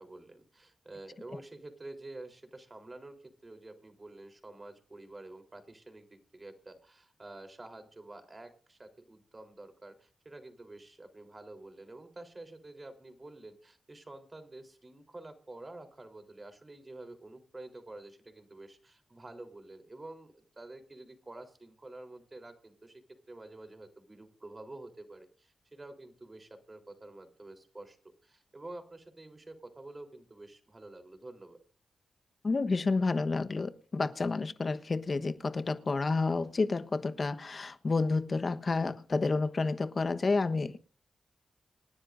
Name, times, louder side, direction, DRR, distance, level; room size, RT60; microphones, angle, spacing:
voice 1, 0.0-3.2 3.4-23.0 23.3-28.0 28.2-31.6, right 2 dB, 35° right, 3.6 m, -49 dB
voice 2, 32.4-40.8, left 3 dB, 50° left, 1.1 m, -30 dB
27.0 x 10.0 x 2.6 m
supercardioid pair, 45°, 0 cm